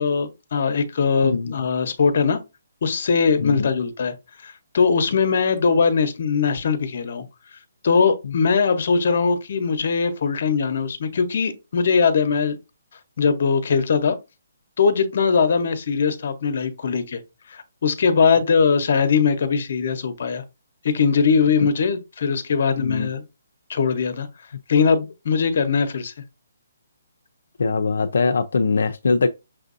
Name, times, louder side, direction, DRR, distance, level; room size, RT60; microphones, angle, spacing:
voice 1, 0.0-2.4 2.8-4.1 4.4-7.2 7.8-12.6 13.2-14.2 14.8-17.2 17.5-20.4 20.8-23.2 23.7-24.3 24.7-26.1, left 5 dB, 50° left, 0.8 m, -20 dB
voice 2, 1.2-1.6 3.4-3.7 8.2-8.3 22.8-23.1 27.6-29.3, left 4 dB, 75° left, 0.4 m, -22 dB
6.0 x 2.5 x 2.5 m
hypercardioid pair, 170°, 0 cm